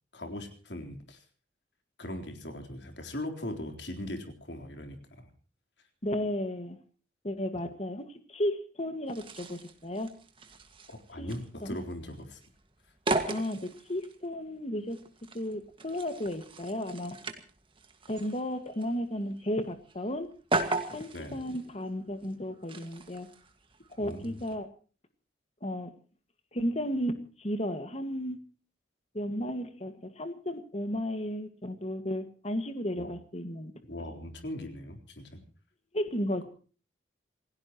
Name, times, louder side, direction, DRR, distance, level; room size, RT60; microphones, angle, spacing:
voice 1, 0.1-1.2 2.0-5.3 7.5-7.6 10.9-12.4 21.1-21.4 24.0-24.4 33.0-33.1 33.9-35.4, left 1 dB, 65° left, 5 dB, 3.9 m, -40 dB
voice 2, 6.0-6.8 7.2-10.1 11.2-11.3 11.6-11.8 13.3-15.0 15.3-17.2 18.1-20.3 20.9-23.3 24.0-24.7 25.6-25.9 26.5-28.4 29.1-33.7 35.9-36.5, equal, 35° left, 8 dB, 1.8 m, -34 dB
sound 1, 9.1-24.6, right 2 dB, 30° right, 1.9 m, -38 dB
28.0 x 16.5 x 3.1 m, 0.39 s
head